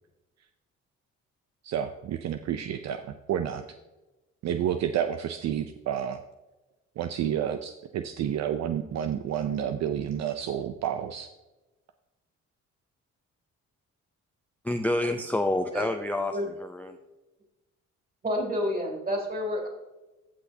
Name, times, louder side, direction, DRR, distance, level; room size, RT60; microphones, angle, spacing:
voice 1, 1.6-3.6 4.4-6.2 7.0-11.3, right 9 dB, 60° right, 8 dB, 0.5 m, -30 dB
voice 2, 14.6-17.0, left 1 dB, 5° left, 6 dB, 0.4 m, -28 dB
voice 3, 18.2-19.7, equal, 30° right, 0 dB, 3.1 m, -29 dB
15.0 x 6.1 x 2.8 m, 1.1 s
cardioid pair, 90°, 30 cm